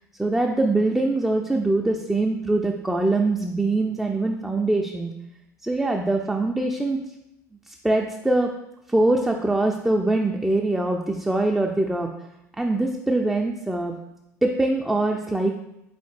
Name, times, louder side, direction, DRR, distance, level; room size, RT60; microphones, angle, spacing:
voice 1, 0.2-5.1 5.6-7.0 7.7-8.5 8.9-12.1 12.6-14.0 14.4-15.5, right 2 dB, 5° right, 1 dB, 0.3 m, -23 dB
3.7 x 3.3 x 3.2 m, 0.86 s
hypercardioid pair, 75°, 9 cm